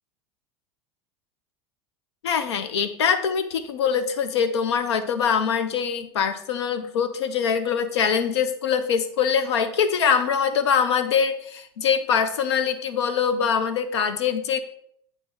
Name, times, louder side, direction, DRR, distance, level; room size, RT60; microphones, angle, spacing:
voice 1, 2.2-14.6, left 7 dB, 80° left, 9 dB, 0.8 m, -23 dB
8.6 x 3.3 x 6.2 m, 0.67 s
hypercardioid pair, 90°, 14 cm